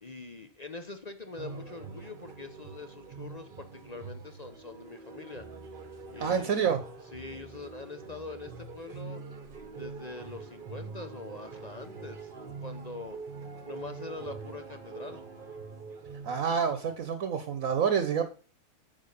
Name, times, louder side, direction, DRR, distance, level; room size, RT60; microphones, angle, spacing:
voice 1, 0.0-5.4 6.1-6.6 7.1-9.2 9.8-13.2 13.6-15.2, left 3 dB, 35° left, 8 dB, 0.7 m, -43 dB
sound 1, 1.4-17.2, right 4 dB, 40° right, 1.1 m, -44 dB
voice 2, 6.2-6.8 16.2-18.2, right 7 dB, 65° right, 8 dB, 1.3 m, -28 dB
8.9 x 6.2 x 5.4 m, 0.38 s
omnidirectional pair, 1.6 m